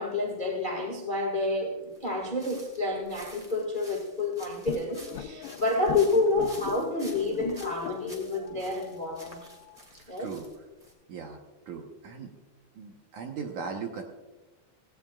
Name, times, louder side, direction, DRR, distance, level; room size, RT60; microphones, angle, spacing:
voice 1, 0.0-9.4 10.1-10.3, left 2 dB, 40° left, 1 dB, 0.7 m, -29 dB
sound 1, 1.9-10.9, equal, 15° right, 1.4 m, -50 dB
sound 2, 4.7-9.8, left 10 dB, 75° left, 2.5 m, -39 dB
voice 2, 9.9-10.6 11.1-12.3 12.8-14.0, right 5 dB, 70° right, 2 dB, 2.0 m, -39 dB
17.5 x 17.5 x 2.4 m, 1.2 s
omnidirectional pair, 4.6 m